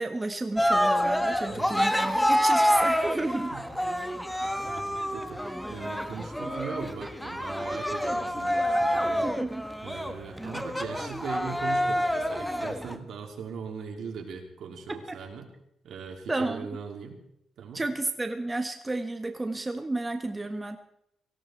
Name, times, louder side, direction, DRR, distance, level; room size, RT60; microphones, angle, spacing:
voice 1, 0.0-3.5 9.2-9.6 10.4-10.6 15.1-15.2 16.3-16.7 17.7-20.8, right 2 dB, 20° right, 7 dB, 1.4 m, -32 dB
Cheering, 0.6-13.0, equal, 5° left, 1.3 m, -27 dB
voice 2, 1.5-1.8 3.5-3.8 4.6-9.3 9.8-15.5 15.8-17.2 17.6-17.8, right 6 dB, 70° right, 3 dB, 3.4 m, -40 dB
18.0 x 16.0 x 4.6 m, 0.75 s
cardioid pair, 95°, 0 cm